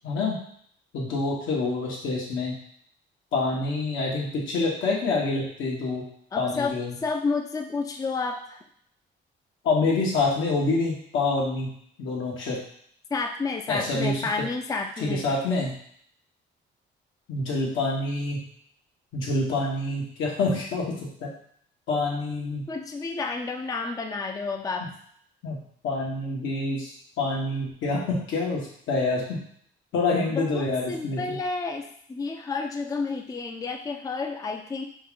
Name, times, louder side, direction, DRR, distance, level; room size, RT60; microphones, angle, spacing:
voice 1, 0.0-0.4 0.9-2.5 3.3-6.1 6.4-6.9 9.6-11.7 12.0-12.6 13.7-14.3 15.0-15.7 17.3-18.4 19.1-21.3 21.9-22.7 25.4-25.6 25.8-28.6 28.9-29.4 29.9-31.4, left 3 dB, 80° left, -3 dB, 1.4 m, -26 dB
voice 2, 6.3-8.6 13.1-15.3 22.7-24.9 30.3-34.8, left 4 dB, 20° left, 4 dB, 0.4 m, -30 dB
4.4 x 2.5 x 3.7 m, 0.64 s
cardioid pair, 90°, 20 cm